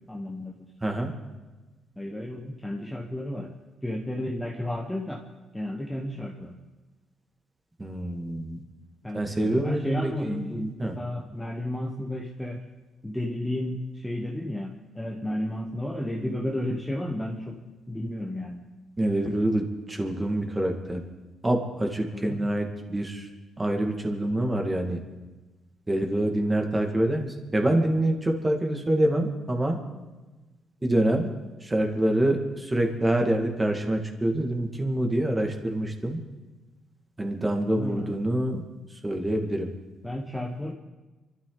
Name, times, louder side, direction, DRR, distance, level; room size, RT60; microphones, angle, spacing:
voice 1, 0.1-0.5 2.0-3.6 3.8-5.2 5.5-6.6 9.0-12.6 13.0-17.6 17.9-18.6 22.1-22.5 37.8-38.1 40.0-40.7, left 1 dB, 5° left, 0 dB, 1.2 m, -32 dB
voice 2, 0.8-1.1 7.8-8.6 9.1-10.9 19.0-21.0 21.4-23.3 23.6-25.0 25.9-29.8 30.8-31.3 31.6-36.2 37.2-38.6 39.0-39.7, right 1 dB, 15° right, 3 dB, 2.1 m, -26 dB
28.0 x 12.5 x 4.0 m, 1.2 s
cardioid pair, 150°, 0 cm